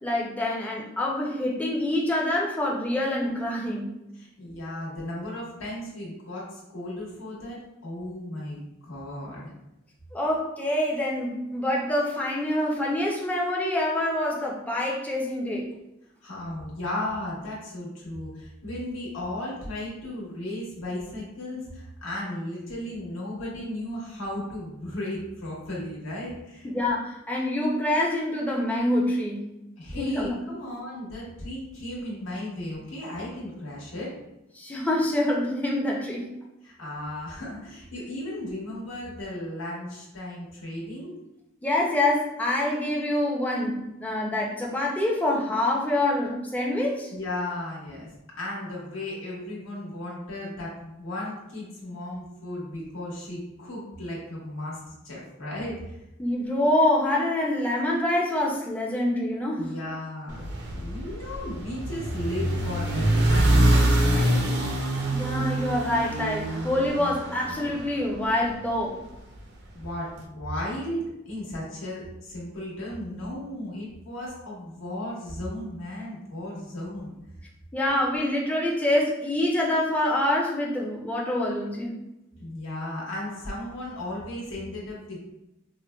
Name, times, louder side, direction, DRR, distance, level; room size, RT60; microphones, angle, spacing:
voice 1, 0.0-3.9 10.1-15.7 26.6-29.4 30.0-30.4 34.6-36.3 41.6-47.1 56.2-59.7 65.1-69.0 77.7-81.9, left 1 dB, 10° left, -2 dB, 0.4 m, -26 dB
voice 2, 4.2-9.5 16.2-26.7 29.8-34.1 36.6-41.1 47.1-54.8 55.0-55.8 59.6-64.5 69.7-77.1 82.4-85.3, left 1 dB, 75° left, -4 dB, 1.1 m, -35 dB
sound 1, 60.3-68.6, right 1 dB, 55° right, 0.4 m, -25 dB
4.3 x 2.1 x 2.2 m, 0.91 s
head